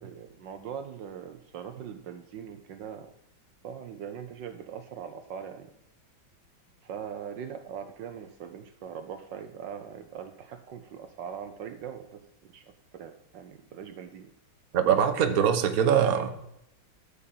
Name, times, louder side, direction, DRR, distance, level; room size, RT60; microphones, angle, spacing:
voice 1, 0.0-3.1 3.6-5.7 6.8-14.3, right 8 dB, 70° right, 8 dB, 1.4 m, -41 dB
voice 2, 14.7-16.3, right 8 dB, 50° right, 7 dB, 1.3 m, -22 dB
12.5 x 5.5 x 7.6 m, 0.77 s
omnidirectional pair, 2.1 m